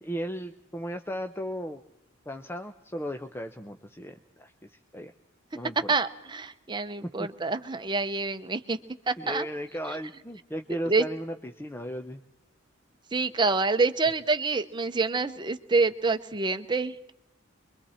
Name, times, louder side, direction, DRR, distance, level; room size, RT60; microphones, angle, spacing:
voice 1, 0.0-1.8 2.3-5.1 5.5-5.9 7.2-7.3 9.2-12.2, equal, 10° left, 6 dB, 0.7 m, -36 dB
voice 2, 5.9-8.8 9.1-9.5 10.9-11.0 13.1-17.1, right 3 dB, 20° right, 9 dB, 0.9 m, -27 dB
26.0 x 23.0 x 4.4 m, 0.86 s
head